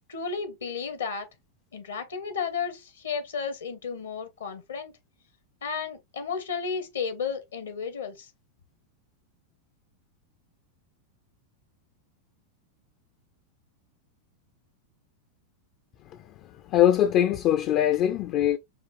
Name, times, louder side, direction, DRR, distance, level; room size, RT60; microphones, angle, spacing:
voice 1, 0.1-1.3 1.7-4.9 5.6-8.3, left 6 dB, 70° left, 0.7 m, -33 dB
voice 2, 16.7-18.6, left 11 dB, 35° left, 0.3 m, -22 dB
5.0 x 2.4 x 2.5 m
figure-of-eight pair, 90°, 0 cm